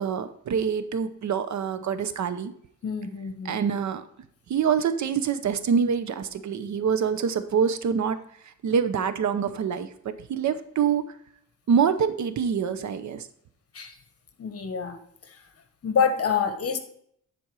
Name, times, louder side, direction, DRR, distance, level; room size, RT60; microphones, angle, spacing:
voice 1, 0.0-2.5 3.4-4.0 4.5-8.2 8.4-11.0 11.7-13.3, right 7 dB, 65° right, 11 dB, 0.8 m, -25 dB
voice 2, 2.8-3.6 13.7-13.9 14.4-15.0 15.8-16.8, left 6 dB, 50° left, 8 dB, 1.2 m, -26 dB
10.0 x 4.5 x 4.7 m, 0.66 s
cardioid pair, 110°, 30 cm